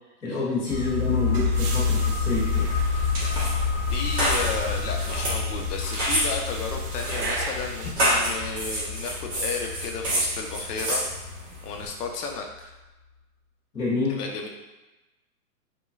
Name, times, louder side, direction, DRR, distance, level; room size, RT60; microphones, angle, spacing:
voice 1, 0.2-2.7 13.7-14.2, left 3 dB, 10° left, -13 dB, 0.5 m, -28 dB
sound 1, 0.6-7.9, right 3 dB, 70° right, 0.8 m, -37 dB
sound 2, 0.7-12.1 12.4-12.5, left 5 dB, 40° left, 0.8 m, -29 dB
sound 3, 2.7-11.9, right 1 dB, 20° right, 1.3 m, -29 dB
voice 2, 3.9-11.0 11.6-12.7 14.1-14.5, left 5 dB, 75° left, 2 dB, 0.8 m, -33 dB
5.0 x 2.2 x 2.4 m, 1.1 s
hypercardioid pair, 160°, 47 cm